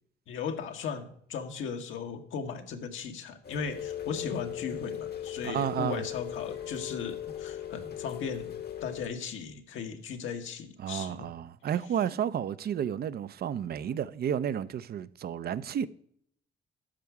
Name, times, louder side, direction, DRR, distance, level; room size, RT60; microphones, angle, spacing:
voice 1, 0.3-11.3, left 6 dB, 80° left, 1.2 m, -37 dB
Rain, 3.4-9.1, left 10 dB, 55° left, 1.0 m, -38 dB
voice 2, 5.4-6.0 10.8-15.9, right 9 dB, 50° right, 0.5 m, -31 dB
12.5 x 4.7 x 4.7 m
cardioid pair, 90°, 20 cm